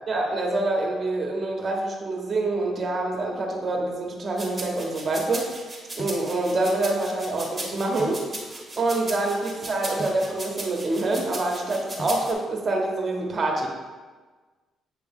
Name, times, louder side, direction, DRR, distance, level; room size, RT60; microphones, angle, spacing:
voice 1, 0.1-5.5 5.9-8.2 8.5-13.7, right 2 dB, 40° right, 1 dB, 1.2 m, -26 dB
sound 1, 4.4-12.3, right 2 dB, 15° right, 1.5 m, -37 dB
sound 2, 6.0-6.3 8.0-8.3 10.0-10.3 12.0-12.3, left 1 dB, 30° left, 0.9 m, -38 dB
7.9 x 3.3 x 3.6 m, 1.4 s
cardioid pair, 90°, 0 cm